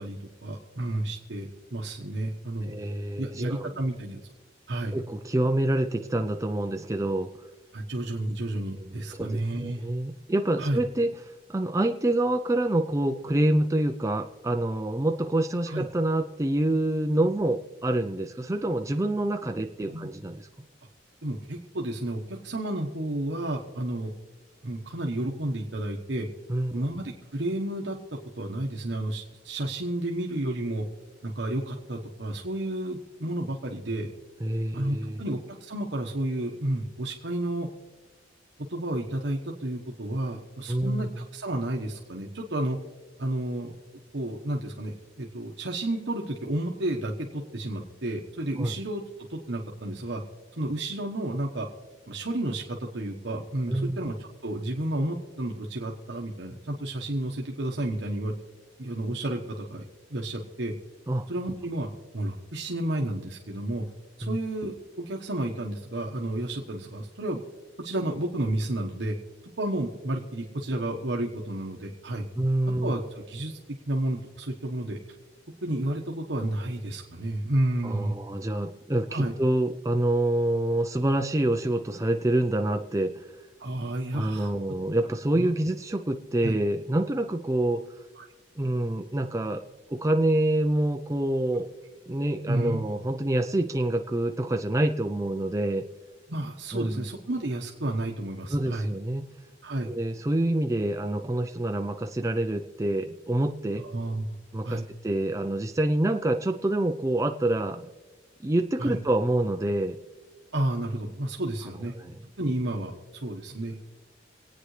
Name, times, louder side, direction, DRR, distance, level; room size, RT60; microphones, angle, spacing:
voice 1, 0.0-2.8 3.2-4.2 4.7-4.9 7.7-9.8 10.6-10.8 15.7-15.8 19.9-20.1 21.2-24.1 24.6-26.3 26.7-28.0 28.3-30.9 31.2-34.1 34.7-37.7 38.7-42.8 43.2-43.7 44.1-49.0 49.3-50.2 50.5-51.7 52.1-54.1 54.4-58.3 58.8-59.8 60.1-60.7 61.3-63.8 64.2-67.4 67.8-69.2 69.6-72.3 72.8-73.6 73.9-75.0 75.6-78.1 79.1-79.3 83.6-84.5 85.3-85.5 86.4-86.6 88.2-88.3 92.5-92.8 96.3-98.9 99.6-99.9 103.8-104.2 104.6-104.9 108.8-109.0 110.5-111.9 112.4-113.9, right 1 dB, 70° right, 0 dB, 1.2 m, -31 dB
voice 2, 2.7-3.7 4.9-7.3 8.9-11.1 11.5-20.4 26.5-26.8 34.4-35.2 40.7-41.1 48.6-48.7 53.7-54.0 61.1-61.3 64.2-64.4 72.4-72.9 77.8-83.3 84.1-87.8 88.6-91.7 92.1-95.8 96.7-97.1 98.5-99.3 99.9-103.8 104.5-107.9 108.4-110.0 111.9-112.2, right 1 dB, 15° right, 5 dB, 0.5 m, -27 dB
26.5 x 9.1 x 3.3 m, 1.2 s
head